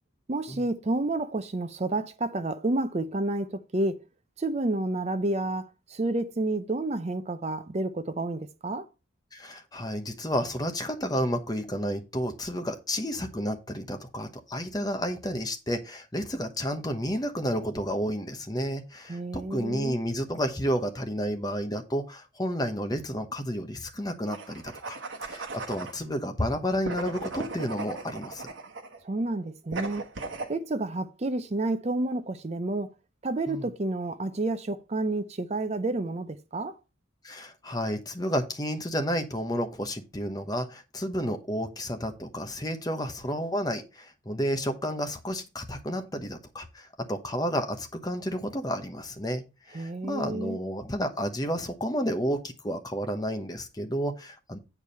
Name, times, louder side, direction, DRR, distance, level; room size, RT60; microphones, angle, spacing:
voice 1, 0.3-4.1 4.4-8.9 19.1-20.0 29.0-30.0 30.5-32.9 33.2-36.8 49.7-50.6, right 2 dB, 30° right, 0.5 m, -30 dB
voice 2, 9.3-28.5 33.5-33.6 37.2-54.6, equal, 20° left, 1.0 m, -31 dB
sound 1, 24.3-26.0 26.8-29.0 29.7-30.5, right 3 dB, 65° right, 1.2 m, -37 dB
8.7 x 4.7 x 5.5 m
head